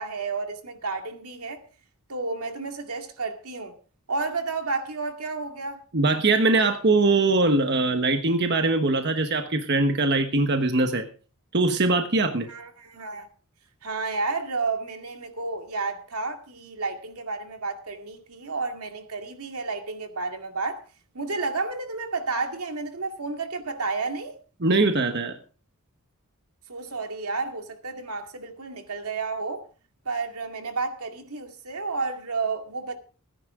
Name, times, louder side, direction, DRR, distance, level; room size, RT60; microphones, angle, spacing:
voice 1, 0.0-1.6 2.1-3.7 4.1-5.8 12.5-13.3 13.8-20.8 21.1-24.4 26.7-29.7 30.1-32.9, right 3 dB, 90° right, 2.3 m, -31 dB
voice 2, 5.9-11.0 11.5-12.5 24.6-25.4, right 3 dB, 50° right, 1.3 m, -22 dB
19.0 x 10.5 x 3.7 m
head